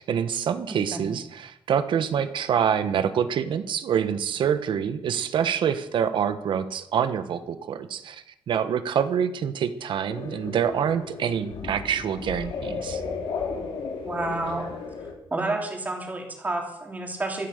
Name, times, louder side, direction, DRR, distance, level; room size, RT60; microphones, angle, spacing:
voice 1, 0.0-13.0, right 8 dB, 65° right, 11 dB, 1.3 m, -26 dB
voice 2, 0.7-1.0 14.0-14.7 15.3-17.5, right 2 dB, 15° right, 2 dB, 3.1 m, -30 dB
sound 1, 10.1-15.1, left 5 dB, 85° left, 4.2 m, -34 dB
16.0 x 13.0 x 6.7 m, 0.80 s
wide cardioid pair, 175°, 9 cm